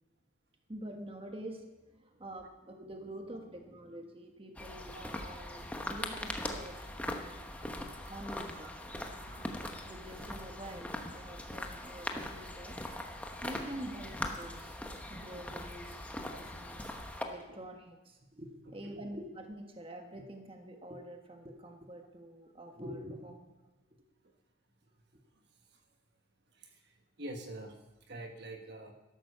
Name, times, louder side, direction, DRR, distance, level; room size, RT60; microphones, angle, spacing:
voice 1, 0.7-7.5 8.1-8.9 9.8-12.8 13.4-14.8 15.1-16.9 17.2-23.5, right 1 dB, 25° right, 3 dB, 1.4 m, -46 dB
sound 1, 4.6-17.2, left 1 dB, 5° left, 1.0 m, -41 dB
voice 2, 4.7-5.4 6.4-6.5 7.4-7.8 8.0-8.7 9.0-9.5 13.5-13.7 16.2-16.4 26.6-26.7 27.2-27.7 28.1-28.9, right 1 dB, 55° right, 4 dB, 1.4 m, -47 dB
13.0 x 11.5 x 6.8 m, 1.1 s
head